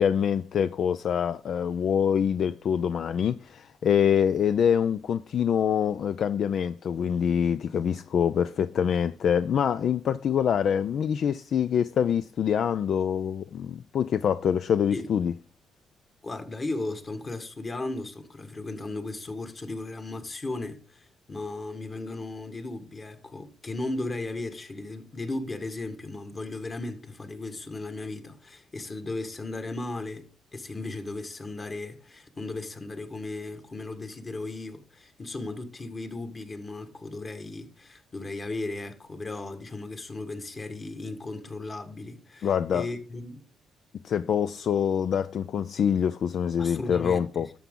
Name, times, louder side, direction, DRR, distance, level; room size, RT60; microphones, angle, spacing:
voice 1, 0.0-15.3 42.4-42.9 44.0-47.5, left 8 dB, 60° left, 0.3 m, -25 dB
voice 2, 16.2-43.4 46.6-47.5, left 2 dB, 30° left, 1.6 m, -36 dB
11.5 x 7.1 x 3.8 m
cardioid pair, 90°, 0 cm